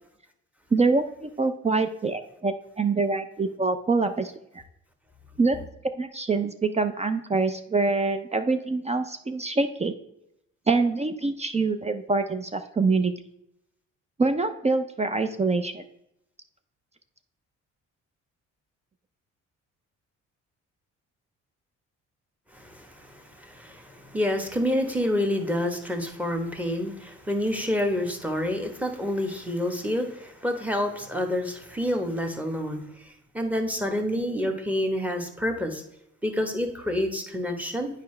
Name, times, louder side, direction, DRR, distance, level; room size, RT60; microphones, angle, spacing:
voice 1, 0.7-4.3 5.4-5.6 6.0-9.9 10.7-13.1 14.2-15.8, right 3 dB, 20° right, 9 dB, 0.4 m, -25 dB
voice 2, 22.5-33.1 33.3-35.8 36.2-37.9, left 1 dB, 5° right, 5 dB, 1.1 m, -28 dB
9.1 x 4.8 x 3.2 m, 0.81 s
cardioid pair, 90°, 30 cm